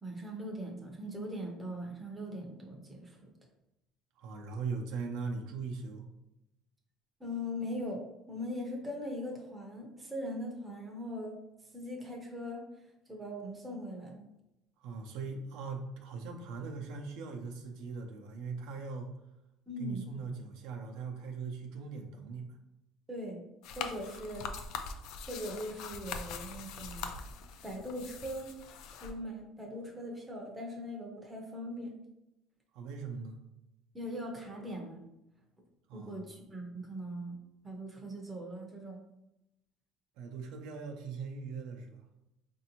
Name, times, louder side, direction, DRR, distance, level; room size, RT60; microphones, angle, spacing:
voice 1, 0.0-3.3 7.2-11.4 11.7-12.7 13.1-14.3 19.7-20.1 23.1-23.4 23.7-24.5 25.3-27.1 27.6-28.5 28.9-32.0 33.9-35.0 35.9-37.4 37.6-39.0, equal, 10° right, 0 dB, 0.6 m, -40 dB
voice 2, 4.2-6.1 14.8-19.1 19.8-22.6 32.7-33.4 35.9-36.3 40.2-42.0, right 4 dB, 75° right, 2 dB, 0.6 m, -40 dB
sound 1, 23.6-29.1, left 5 dB, 60° left, 0.3 m, -42 dB
4.2 x 2.6 x 2.9 m, 0.89 s
cardioid pair, 160°, 0 cm